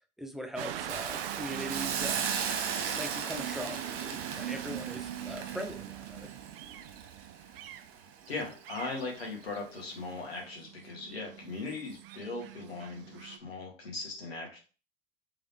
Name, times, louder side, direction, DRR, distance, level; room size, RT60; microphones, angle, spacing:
voice 1, 0.2-2.3 2.9-6.3, equal, ahead, 5 dB, 0.6 m, -40 dB
sound 1, 0.6-13.4, right 11 dB, 70° right, 0.5 m, -41 dB
Hiss, 0.9-7.9 8.3-8.5, right 7 dB, 45° right, 0.8 m, -37 dB
voice 2, 8.3-14.6, left 3 dB, 85° left, 0 dB, 1.4 m, -39 dB
3.7 x 3.4 x 2.8 m, 0.36 s
hypercardioid pair, 80°, 30 cm